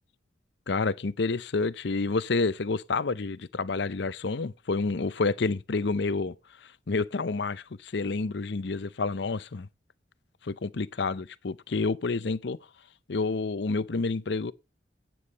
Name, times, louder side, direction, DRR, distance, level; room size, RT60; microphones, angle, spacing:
voice 1, 0.7-6.3 6.6-9.7 10.4-12.6 13.1-14.5, left 3 dB, 65° left, 0.6 m, -29 dB
9.5 x 8.5 x 4.0 m
head